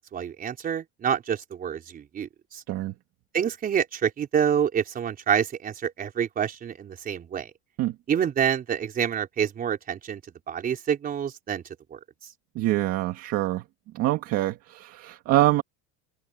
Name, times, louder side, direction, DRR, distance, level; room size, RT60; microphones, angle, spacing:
voice 1, 0.0-2.6 3.3-7.5 8.1-10.2 10.5-11.6 11.9-12.0, right 8 dB, 25° right, 4.5 m, -27 dB
voice 2, 12.6-13.6 13.9-15.6, right 15 dB, 45° right, 2.1 m, -25 dB
open air
cardioid pair, 165°, 35 cm